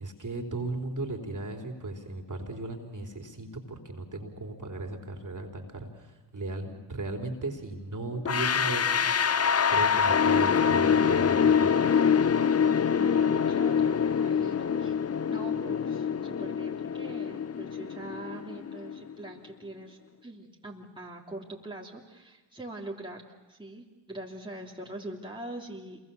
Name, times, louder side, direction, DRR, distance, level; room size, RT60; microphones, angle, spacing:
voice 1, 0.0-9.4 9.7-11.7, right 2 dB, 40° right, 3 dB, 3.8 m, -36 dB
sound 1, 8.3-19.1, left 7 dB, 30° left, 0.7 m, -25 dB
voice 2, 12.9-15.0 15.3-26.0, right 1 dB, 10° right, -2 dB, 3.2 m, -43 dB
27.0 x 23.0 x 7.1 m, 1.2 s
supercardioid pair, 50°, 49 cm